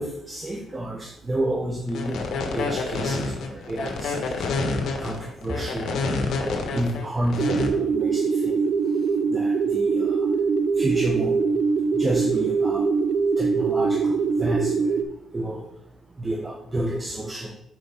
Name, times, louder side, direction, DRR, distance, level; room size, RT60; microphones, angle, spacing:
voice 1, 0.0-4.7 5.0-6.0 6.4-8.5 9.3-10.2 10.8-11.4 11.9-12.9 13.4-14.9 15.3-15.6 16.2-17.5, right 1 dB, 20° right, 0 dB, 1.1 m, -30 dB
sound 1, 1.9-7.7, left 3 dB, 70° left, 1.3 m, -28 dB
sound 2, 7.4-15.0, right 5 dB, 50° right, 0.6 m, -23 dB
6.5 x 4.5 x 5.6 m, 0.80 s
cardioid pair, 90°, 0 cm